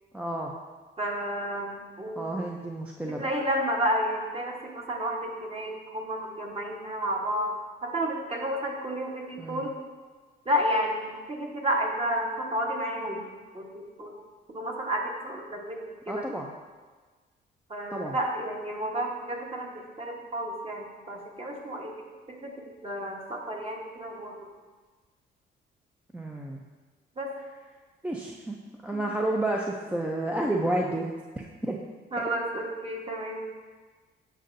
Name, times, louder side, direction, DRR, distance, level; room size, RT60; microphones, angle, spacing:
voice 1, 0.1-0.5 2.2-3.3 9.4-9.7 16.1-16.5 17.9-18.2 26.1-26.6 28.0-28.6 28.8-31.1 31.6-31.8 32.2-32.3, right 1 dB, 5° right, -1 dB, 0.5 m, -30 dB
voice 2, 1.0-2.2 3.1-7.5 7.8-9.7 10.5-13.2 13.5-14.1 14.5-16.3 17.7-19.7 20.0-21.9 22.4-22.5 22.8-24.3 27.2-27.3 28.9-29.0 32.1-33.5, equal, 30° right, -1 dB, 1.2 m, -31 dB
8.1 x 5.4 x 2.6 m, 1.4 s
cardioid pair, 90°, 20 cm